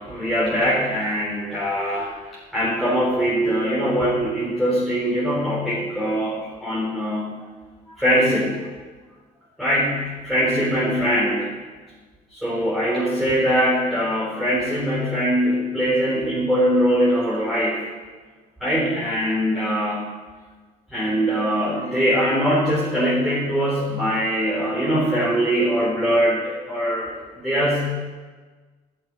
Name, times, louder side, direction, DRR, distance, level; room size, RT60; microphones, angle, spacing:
voice 1, 0.0-7.3 8.0-8.6 9.6-11.5 12.3-17.9 18.6-20.0 20.9-27.1 27.4-27.9, equal, ahead, -7 dB, 3.9 m, -22 dB
10.5 x 8.1 x 9.8 m, 1.4 s
cardioid pair, 110°, 17 cm